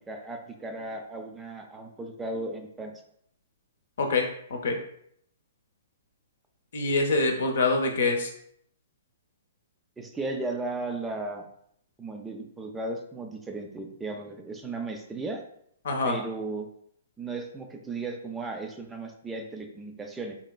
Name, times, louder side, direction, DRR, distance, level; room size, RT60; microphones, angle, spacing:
voice 1, 0.1-2.9 10.0-11.5 12.0-15.4 16.0-16.7 17.2-20.4, right 2 dB, 10° right, 3 dB, 0.4 m, -35 dB
voice 2, 4.0-4.8 6.7-8.3 15.8-16.2, left 3 dB, 60° left, 3 dB, 0.7 m, -25 dB
4.0 x 2.9 x 2.2 m, 0.69 s
figure-of-eight pair, 115°, 0 cm